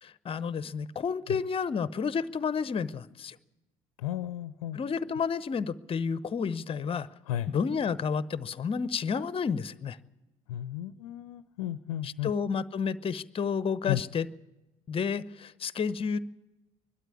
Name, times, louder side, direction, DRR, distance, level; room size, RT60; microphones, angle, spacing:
voice 1, 0.0-3.4 4.7-7.1 7.5-10.0 12.0-14.3 14.9-16.2, left 6 dB, 30° left, 17 dB, 0.8 m, -31 dB
voice 2, 4.0-4.8 7.3-7.5 10.5-12.3 13.8-14.0, left 13 dB, 75° left, 15 dB, 0.6 m, -33 dB
21.5 x 12.5 x 9.7 m, 1.0 s
figure-of-eight pair, 55°, 18 cm